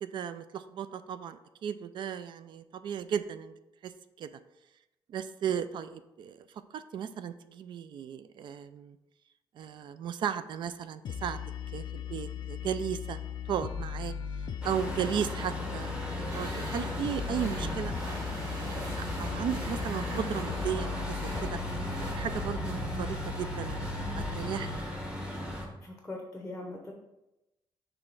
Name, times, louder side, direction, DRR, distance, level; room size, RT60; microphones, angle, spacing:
voice 1, 0.0-3.5 3.8-3.9 4.2-4.3 5.1-6.4 6.7-9.0 9.5-11.4 11.7-13.2 13.5-14.1 14.6-17.9 18.4-21.6 22.0-23.9 24.1-24.7, right 8 dB, 60° right, 12 dB, 0.4 m, -35 dB
sound 1, 11.0-24.8, left 7 dB, 50° left, 0.4 m, -38 dB
Truck, 14.6-25.6, equal, 10° right, 1.0 m, -36 dB
sound 2, 16.3-22.1, right 2 dB, 35° right, 1.1 m, -43 dB
voice 2, 25.8-26.9, left 2 dB, 10° left, 1 dB, 0.8 m, -41 dB
6.1 x 3.3 x 4.6 m, 0.93 s
cardioid pair, 155°, 9 cm